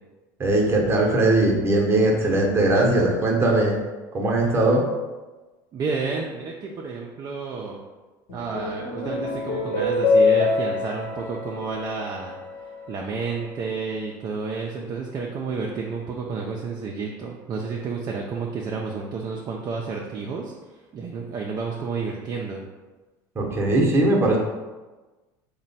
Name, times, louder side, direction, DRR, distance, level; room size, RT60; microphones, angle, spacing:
voice 1, 0.4-3.8 4.1-4.9 23.4-24.4, right 2 dB, 25° right, -1 dB, 0.8 m, -20 dB
voice 2, 5.7-7.8 8.3-12.4 12.9-20.5 20.9-22.6, right 4 dB, 40° right, -1 dB, 0.4 m, -30 dB
sound 1, 8.3-12.9, left 3 dB, 80° left, 1.0 m, -24 dB
3.0 x 2.2 x 4.1 m, 1.2 s
supercardioid pair, 95°, 10 cm